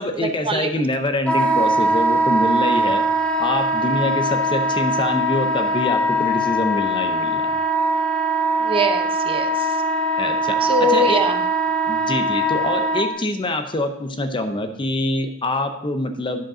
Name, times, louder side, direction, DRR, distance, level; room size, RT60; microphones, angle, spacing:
voice 1, 0.0-3.0 3.4-7.5 10.2-11.3 11.9-16.4, left 1 dB, 25° left, 7 dB, 0.7 m, -25 dB
Wind instrument woodwind instrument, 1.3-13.0, right 1 dB, 5° left, 1.0 m, -21 dB
voice 2, 8.6-9.7 10.6-11.4, equal, 25° right, 6 dB, 0.8 m, -22 dB
10.5 x 5.1 x 6.1 m, 0.82 s
head